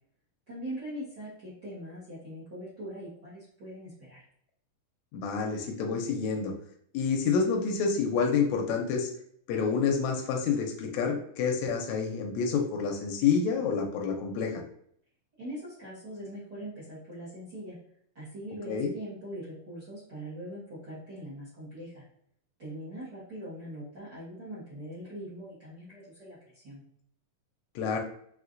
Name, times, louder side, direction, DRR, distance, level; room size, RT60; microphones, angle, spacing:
voice 1, 0.5-4.2 15.4-17.7 18.1-22.0 22.6-26.8, right 1 dB, 55° right, -10 dB, 1.2 m, -42 dB
voice 2, 5.1-6.5 6.9-9.1 9.5-14.6 18.6-18.9 27.7-28.0, left 5 dB, 80° left, 2 dB, 1.7 m, -28 dB
5.2 x 3.1 x 2.5 m, 0.66 s
omnidirectional pair, 3.8 m